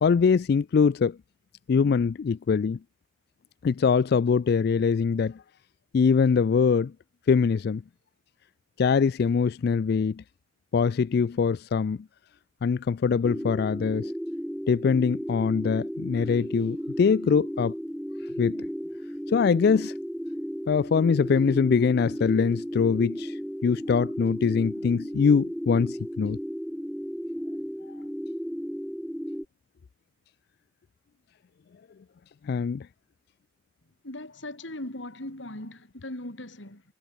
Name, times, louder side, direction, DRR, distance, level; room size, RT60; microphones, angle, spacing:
voice 1, 0.0-1.2 1.7-2.8 3.6-5.4 5.9-6.9 7.3-7.8 8.8-10.2 10.7-12.0 12.6-14.1 14.7-17.7 18.4-18.7 19.3-19.9 20.7-26.4 32.4-32.9, left 5 dB, 55° left, 0.3 m, -23 dB
sound 1, 13.2-29.5, equal, ahead, 1.4 m, -34 dB
voice 2, 34.0-36.8, left 1 dB, 80° left, 3.8 m, -39 dB
head